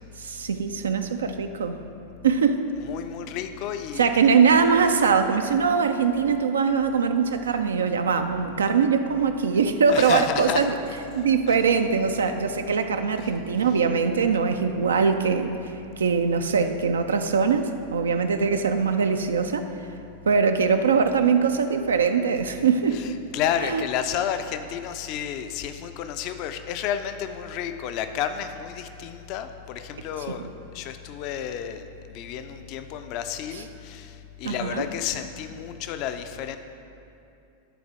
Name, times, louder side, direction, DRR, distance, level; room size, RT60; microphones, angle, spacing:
voice 1, 0.2-1.8 2.2-2.7 4.0-10.7 11.2-15.5 16.0-19.7 20.3-23.0 23.6-23.8 30.3-30.4 33.5-33.6 34.4-34.8, right 5 dB, 70° right, 7 dB, 0.3 m, -22 dB
voice 2, 2.8-4.3 9.9-10.7 11.5-11.6 13.2-13.3 22.9-30.5 30.7-36.6, left 9 dB, 40° left, 9 dB, 0.4 m, -31 dB
10.0 x 3.9 x 4.7 m, 2.6 s
figure-of-eight pair, 90°, 0 cm